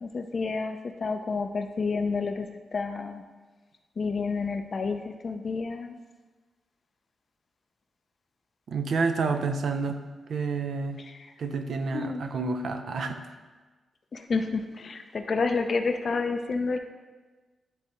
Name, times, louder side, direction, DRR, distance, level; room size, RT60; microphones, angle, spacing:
voice 1, 0.0-3.2 4.0-6.0 11.1-11.3 11.9-12.2 14.1-16.8, left 4 dB, 55° left, 6 dB, 0.6 m, -30 dB
voice 2, 8.7-10.0 10.3-11.0 11.4-13.2, right 4 dB, 75° right, 6 dB, 0.5 m, -29 dB
10.0 x 3.4 x 3.0 m, 1.3 s
cardioid pair, 70°, 0 cm